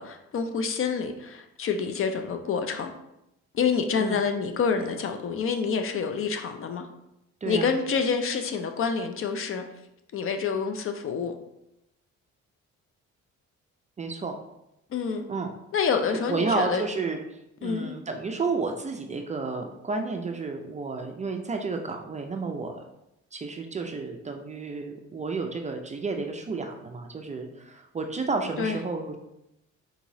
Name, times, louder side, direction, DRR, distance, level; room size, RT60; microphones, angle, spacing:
voice 1, 0.0-2.9 3.5-6.9 7.5-9.6 10.1-11.4 14.9-15.2 15.7-16.8 17.6-18.0 28.6-28.8, left 5 dB, 45° left, 6 dB, 0.5 m, -27 dB
voice 2, 7.4-7.7 14.0-14.4 15.3-15.5 16.3-22.8 23.3-29.2, right 4 dB, 25° right, 4 dB, 0.4 m, -31 dB
4.0 x 2.9 x 2.6 m, 0.86 s
cardioid pair, 90°, 30 cm